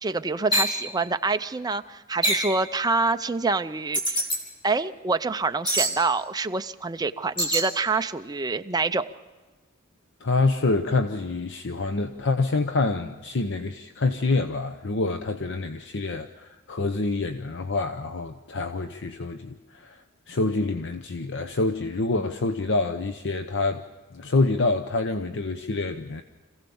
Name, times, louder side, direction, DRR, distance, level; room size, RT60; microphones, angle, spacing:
voice 1, 0.0-4.2 4.6-9.1, right 3 dB, 20° right, 8 dB, 0.6 m, -26 dB
sound 1, 0.5-0.8 2.2-2.5 3.9-4.4 5.6-6.0 7.4-7.7, right 1 dB, 25° left, 3.2 m, -24 dB
voice 2, 10.2-23.8 24.1-26.2, left 3 dB, 60° left, 8 dB, 0.8 m, -26 dB
26.0 x 16.0 x 7.1 m, 1.3 s
head